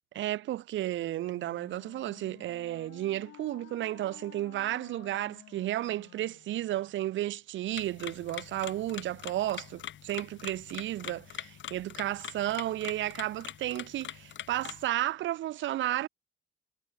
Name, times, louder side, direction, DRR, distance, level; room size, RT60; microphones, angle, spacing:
voice 1, 0.1-16.1, right 14 dB, 70° right, 0.7 m, -33 dB
Wind instrument woodwind instrument, 1.0-7.1, left 15 dB, 85° left, 4.2 m, -54 dB
sound 1, 7.8-14.9, left 11 dB, 70° left, 7.6 m, -44 dB
cardioid pair, 90°, 20 cm